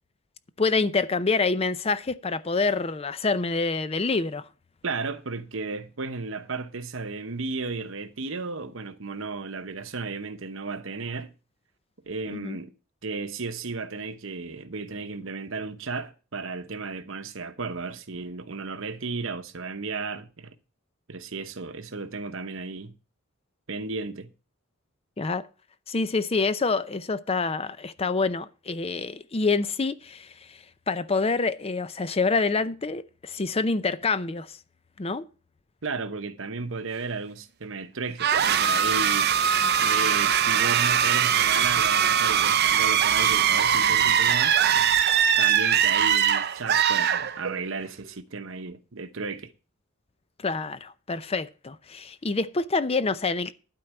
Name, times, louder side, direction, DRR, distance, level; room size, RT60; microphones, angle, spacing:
voice 1, 0.6-4.5 12.3-12.6 25.2-25.5 25.9-30.6 30.9-34.6 35.0-35.2 50.4-53.5, left 4 dB, 30° left, 0.5 m, -27 dB
voice 2, 4.8-11.3 12.1-12.7 13.0-20.5 21.1-22.9 23.7-24.3 35.8-39.3 39.8-44.6 45.4-49.5, right 4 dB, 65° right, 1.0 m, -34 dB
sound 1, 38.2-47.8, right 8 dB, 50° right, 0.6 m, -21 dB
12.0 x 4.6 x 7.7 m
head